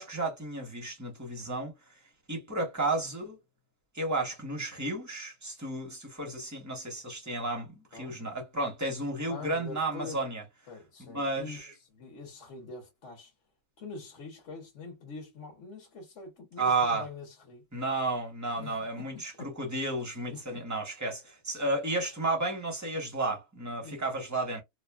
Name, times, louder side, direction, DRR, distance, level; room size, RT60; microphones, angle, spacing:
voice 1, 0.0-1.7 2.3-3.4 3.9-10.4 11.0-11.7 16.6-17.0 17.7-24.6, right 2 dB, 15° right, 0.6 m, -32 dB
voice 2, 9.3-10.2 10.7-11.6 11.9-13.3 13.8-17.6 18.5-19.5 20.3-20.6 23.8-24.0, left 4 dB, 45° left, 1.3 m, -44 dB
3.0 x 2.3 x 2.2 m
omnidirectional pair, 1.8 m